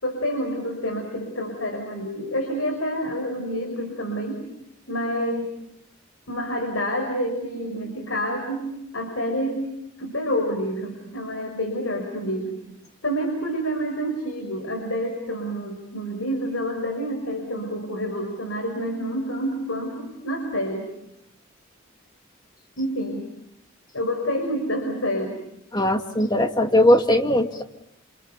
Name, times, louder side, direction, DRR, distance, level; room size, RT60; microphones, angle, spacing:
voice 1, 0.0-4.4 4.9-5.5 6.3-9.7 10.0-12.6 13.0-20.9 22.8-23.2 23.9-25.4, equal, 80° left, 3 dB, 5.8 m, -28 dB
voice 2, 25.7-27.6, left 1 dB, 20° left, 5 dB, 1.9 m, -19 dB
28.5 x 28.0 x 6.9 m, 0.78 s
head